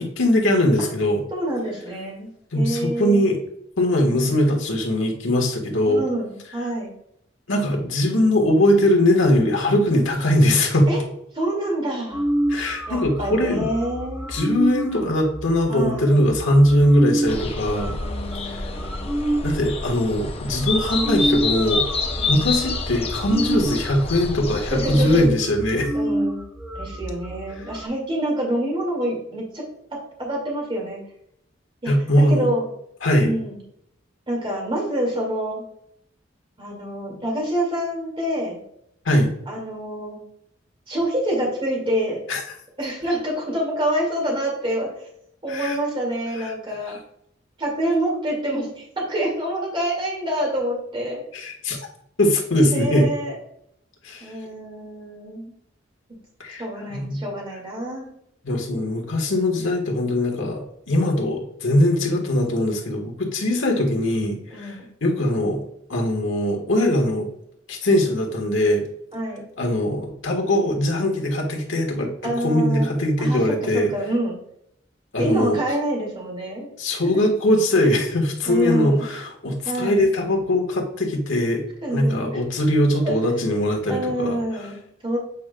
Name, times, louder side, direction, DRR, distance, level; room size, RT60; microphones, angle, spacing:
voice 1, 0.0-1.2 2.5-3.4 3.8-6.0 7.5-10.9 12.5-13.7 14.3-17.9 18.4-18.6 19.4-21.8 22.3-25.9 31.9-32.5 33.0-33.3 39.0-39.3 42.3-42.4 45.5-45.7 46.4-46.5 51.3-51.8 52.2-53.0 54.0-54.3 56.4-56.6 56.9-57.2 58.4-65.6 65.9-67.3 67.7-68.8 69.6-73.9 75.1-75.6 76.8-81.6 81.9-84.4, left 1 dB, 80° left, 1 dB, 1.5 m, -21 dB
voice 2, 1.3-3.3 5.9-6.9 10.9-11.0 11.3-12.2 12.9-14.3 15.7-16.3 17.6-19.1 22.2-22.5 24.7-25.3 25.9-26.4 26.7-29.6 29.9-31.0 31.8-32.7 33.2-33.6 34.3-35.6 36.6-38.6 39.5-40.2 40.9-42.2 42.8-44.9 45.4-47.0 47.6-51.2 52.7-53.3 54.2-55.5 56.6-58.1 64.5-64.9 69.1-69.5 72.2-72.9 73.2-74.4 75.2-76.7 77.8-77.9 78.5-79.1 79.6-80.1 81.8-82.4 83.0-83.2 83.9-85.2, right 1 dB, 25° right, -2 dB, 2.1 m, -27 dB
sound 1, 12.1-19.5 20.2-20.3 20.5-27.9, right 1 dB, 5° right, 0.6 m, -28 dB
sound 2, 17.3-25.2, left 3 dB, 30° left, 0.6 m, -28 dB
8.3 x 5.0 x 2.3 m, 0.74 s
head